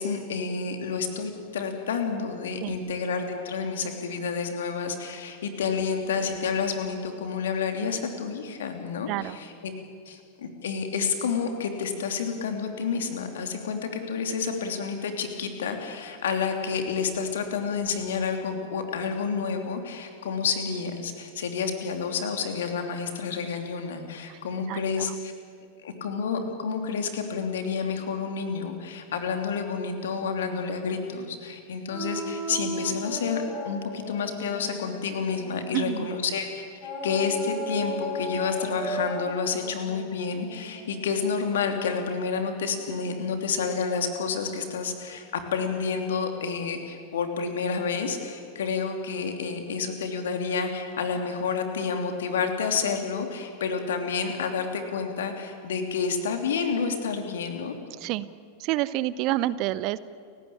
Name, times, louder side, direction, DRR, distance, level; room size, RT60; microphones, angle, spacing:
voice 1, 0.0-9.7 10.1-25.1 25.8-57.7, left 5 dB, 60° left, 5 dB, 3.0 m, -29 dB
voice 2, 9.1-9.4 24.3-24.4 24.7-25.2 35.7-36.1 58.0-58.3 58.6-60.0, right 15 dB, 40° right, 18 dB, 0.7 m, -28 dB
sound 1, 31.9-36.1 36.8-41.6, equal, 35° left, 7.0 m, -36 dB
29.5 x 16.0 x 8.8 m, 2.3 s
figure-of-eight pair, 90°, 0 cm